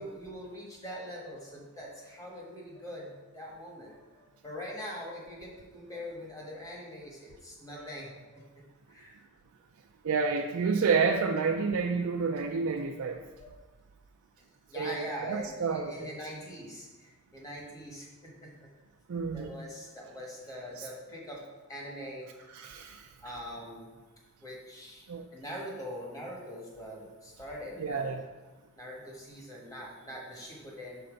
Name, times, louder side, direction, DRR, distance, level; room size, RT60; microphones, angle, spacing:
voice 1, 0.0-8.4 8.9-9.2 10.0-10.1 12.3-12.4 13.0-13.5 14.7-18.7 19.3-21.4 21.7-22.3 23.2-23.9 24.4-28.1 28.7-31.0, equal, 15° left, -3 dB, 1.2 m, -43 dB
voice 2, 10.0-13.2 14.8-16.1 19.1-19.5 20.8-20.9 22.5-23.1 25.1-25.2 27.8-28.2, right 5 dB, 70° right, 3 dB, 0.4 m, -29 dB
5.7 x 3.9 x 5.1 m, 1.2 s
head